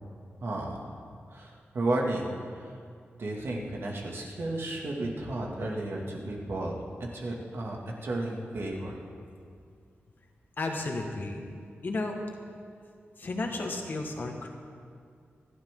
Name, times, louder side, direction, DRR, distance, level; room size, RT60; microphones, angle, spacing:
voice 1, 0.4-0.8 1.3-2.7 3.2-9.0, right 2 dB, 65° right, -2 dB, 2.4 m, -33 dB
voice 2, 10.6-11.4 11.8-12.2 13.2-14.5, left 2 dB, 50° left, 2 dB, 1.7 m, -33 dB
27.5 x 12.0 x 3.9 m, 2.2 s
wide cardioid pair, 170°, 4 cm